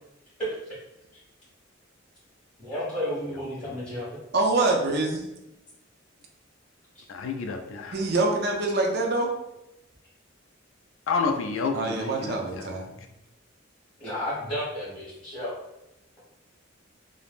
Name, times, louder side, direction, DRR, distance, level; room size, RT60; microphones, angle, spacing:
voice 1, 2.6-4.1 14.0-15.5, equal, 30° left, -11 dB, 1.4 m, -32 dB
voice 2, 4.3-5.3 7.9-9.3 11.7-12.9, right 2 dB, 50° right, 1 dB, 0.5 m, -25 dB
voice 3, 7.1-8.0 11.1-12.7, left 4 dB, 75° left, 4 dB, 0.3 m, -30 dB
3.2 x 2.1 x 2.4 m, 0.90 s
head